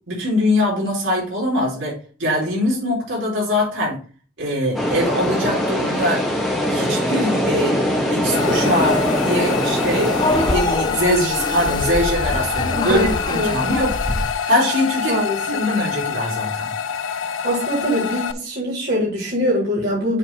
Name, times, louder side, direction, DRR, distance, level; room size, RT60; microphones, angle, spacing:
voice 1, 0.1-4.0 4.4-6.2 6.7-7.8 8.1-14.0 14.5-15.2 15.5-16.7, left 1 dB, 85° right, -4 dB, 4.0 m, -22 dB
sound 1, 4.7-10.6, equal, ahead, 1.6 m, -21 dB
sound 2, 8.3-18.3, left 7 dB, 80° left, 0.6 m, -26 dB
sound 3, 8.4-14.3, left 2 dB, 20° left, 0.5 m, -26 dB
voice 2, 12.8-13.6 15.1-15.6 17.4-20.2, equal, 55° right, -5 dB, 3.5 m, -23 dB
7.4 x 4.0 x 5.6 m, 0.38 s
head